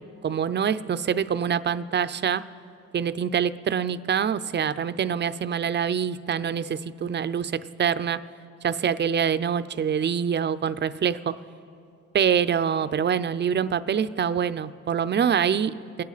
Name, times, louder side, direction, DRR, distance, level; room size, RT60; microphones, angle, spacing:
voice 1, 0.2-2.4 2.9-8.2 8.6-11.3 12.1-16.0, right 7 dB, 35° right, 13 dB, 0.5 m, -25 dB
26.5 x 10.5 x 4.0 m, 2.6 s
cardioid pair, 90°, 30 cm